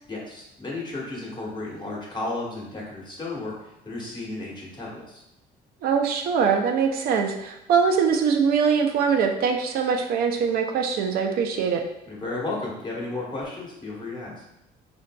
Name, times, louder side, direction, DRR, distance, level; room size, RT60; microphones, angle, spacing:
voice 1, 0.1-5.2 12.0-14.4, left 2 dB, 25° left, -4 dB, 1.1 m, -33 dB
voice 2, 5.8-11.8, right 6 dB, 65° right, 3 dB, 0.4 m, -22 dB
3.7 x 2.6 x 2.2 m, 0.84 s
cardioid pair, 110°, 17 cm